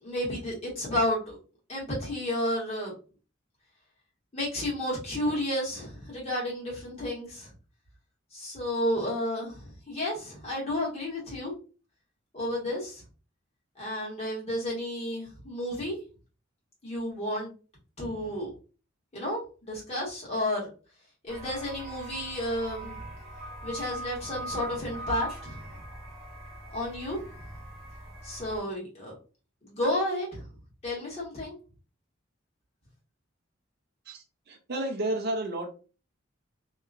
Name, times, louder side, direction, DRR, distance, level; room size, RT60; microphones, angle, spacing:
voice 1, 0.0-1.4 1.7-2.9 4.3-7.5 8.3-11.5 12.3-13.0 13.8-16.0 16.8-17.5 18.0-18.5 19.1-20.7 21.2-23.0 23.6-25.6 26.7-27.2 28.2-29.2 29.6-30.4 30.8-31.5, left 1 dB, 30° left, 1.4 m, -31 dB
sound 1, 21.3-28.6, right 1 dB, ahead, 1.0 m, -41 dB
voice 2, 34.1-35.7, right 1 dB, 50° right, 0.5 m, -32 dB
2.9 x 2.3 x 2.4 m
head